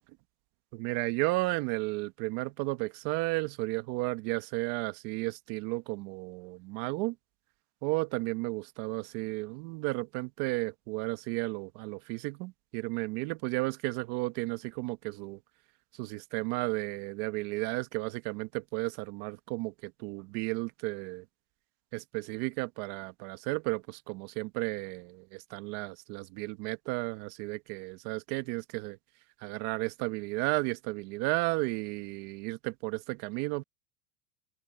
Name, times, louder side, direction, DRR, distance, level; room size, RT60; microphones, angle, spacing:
voice 1, 0.7-7.2 7.8-15.4 15.9-21.2 21.9-29.0 29.4-33.6, right 23 dB, 50° right, 1.2 m, -33 dB
open air
supercardioid pair, 145°, 48 cm